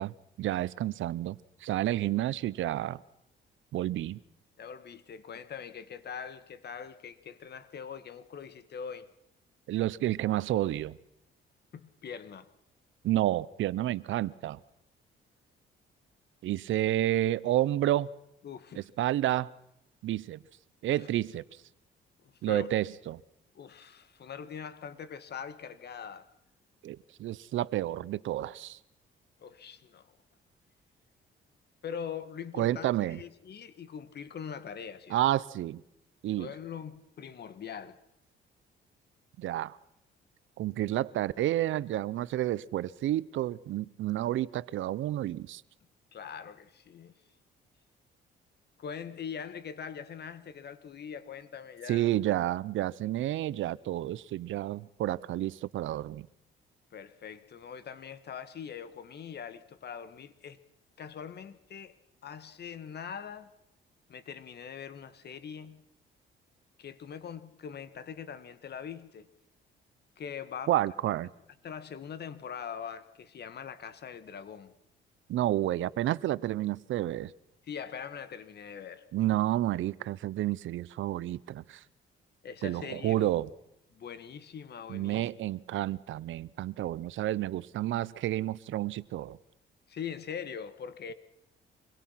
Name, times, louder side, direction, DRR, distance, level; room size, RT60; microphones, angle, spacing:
voice 1, 0.0-3.0 3.7-4.2 9.7-11.0 13.0-14.6 16.4-18.1 19.0-19.5 20.0-20.4 20.8-21.4 22.4-23.2 26.8-28.8 32.6-33.2 35.1-35.8 36.2-36.5 39.4-39.8 40.6-45.6 51.9-56.3 70.7-71.3 75.3-77.3 79.1-81.8 82.6-83.5 84.9-89.4, right 14 dB, 75° right, 0.8 m, -30 dB
voice 2, 4.6-9.1 11.7-12.5 18.4-18.9 20.8-21.1 22.2-22.7 23.5-26.3 29.4-30.1 31.8-35.2 36.4-38.0 46.1-47.1 48.8-52.1 56.9-60.6 61.0-62.0 62.2-63.5 64.1-65.8 66.8-69.3 70.2-70.7 71.6-74.7 77.6-79.1 82.4-83.3 83.9-85.3 89.9-91.1, left 7 dB, 55° left, 1.7 m, -42 dB
26.5 x 22.0 x 5.8 m
cardioid pair, 90°, 20 cm